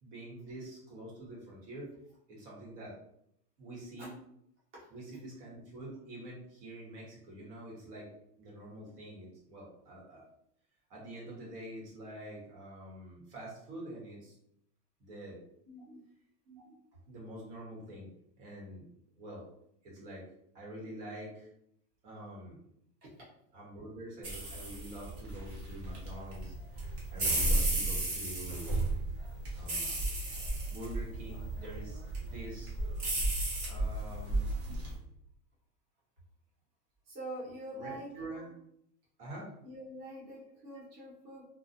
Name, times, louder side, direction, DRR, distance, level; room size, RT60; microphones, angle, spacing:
voice 1, 0.0-1.9 2.3-3.0 3.6-4.1 4.9-8.1 8.4-10.2 10.9-14.3 15.0-15.4 16.5-16.7 17.1-18.1 18.4-18.8 19.2-19.4 19.8-20.3 20.5-21.5 22.0-22.6 23.5-28.8 29.5-29.9 30.7-32.7 33.7-34.5 37.7-38.5 39.2-39.5 40.7-40.8, right 1 dB, 75° right, -4 dB, 1.3 m, -46 dB
voice 2, 15.7-16.0 23.0-23.1 27.6-27.7 37.0-38.1 39.6-41.4, right 1 dB, 20° right, -7 dB, 0.6 m, -45 dB
sound 1, 24.2-34.9, right 2 dB, 45° right, 1.0 m, -34 dB
2.3 x 2.3 x 2.6 m, 0.74 s
supercardioid pair, 170°, 46 cm